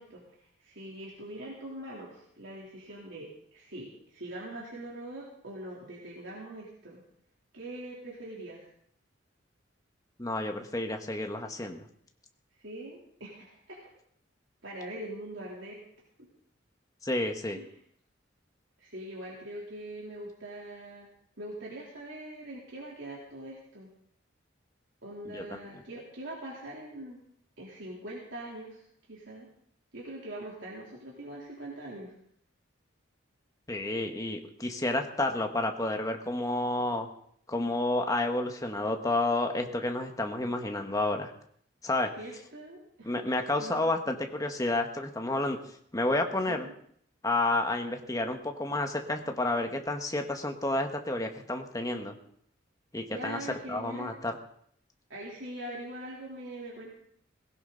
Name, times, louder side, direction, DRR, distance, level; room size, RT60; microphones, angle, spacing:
voice 1, 0.0-7.0 7.5-8.7 12.6-13.9 14.6-15.8 16.2-16.3 17.5-17.7 18.8-21.1 21.4-23.9 25.0-27.2 27.6-28.8 29.1-29.5 29.9-32.1 42.2-43.9 46.5-46.7 51.9-52.0 53.1-54.1 55.1-56.9, right 1 dB, 80° right, -4 dB, 3.3 m, -42 dB
voice 2, 10.2-11.8 17.0-17.6 25.2-25.8 33.7-37.1 37.5-41.3 41.8-42.1 43.0-45.6 45.9-46.7 47.2-52.1 52.9-53.4 53.7-54.3, left 2 dB, 20° left, 4 dB, 1.4 m, -30 dB
18.5 x 16.5 x 4.0 m, 0.66 s
head